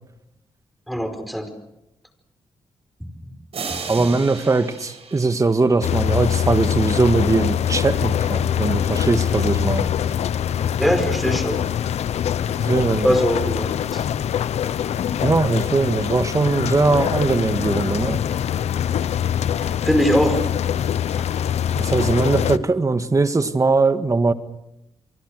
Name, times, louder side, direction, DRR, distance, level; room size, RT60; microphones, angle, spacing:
voice 1, 0.9-1.5 3.0-3.3 4.0-4.1 10.8-11.6 13.0-14.0 19.6-20.4, equal, ahead, 7 dB, 5.0 m, -22 dB
sound 1, 3.5-6.2, right 5 dB, 65° right, 6.5 m, -35 dB
voice 2, 3.9-9.9 12.6-13.1 15.2-18.2 21.7-24.3, right 3 dB, 30° right, 10 dB, 1.8 m, -20 dB
sound 2, 5.8-22.6, left 9 dB, 80° left, 0.8 m, -23 dB
28.5 x 24.0 x 6.5 m, 0.88 s
cardioid pair, 85°, 11 cm